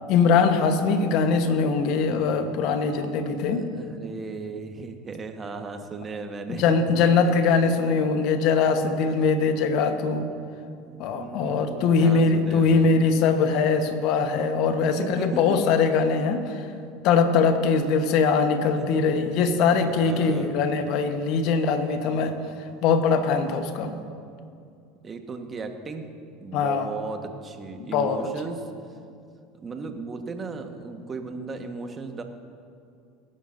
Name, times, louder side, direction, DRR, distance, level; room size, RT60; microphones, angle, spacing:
voice 1, 0.1-3.6 6.5-10.3 11.0-16.7 17.0-22.4 22.8-24.0 26.5-26.9 27.8-28.3, left 5 dB, 60° left, 7 dB, 1.2 m, -22 dB
voice 2, 3.5-6.7 7.2-7.3 8.9-9.0 10.7-13.0 15.0-15.6 18.8-20.6 25.0-26.1 26.4-28.6 29.5-32.2, right 4 dB, 30° right, 5 dB, 1.4 m, -36 dB
22.0 x 11.0 x 2.7 m, 2.4 s
hypercardioid pair, 80°, 0 cm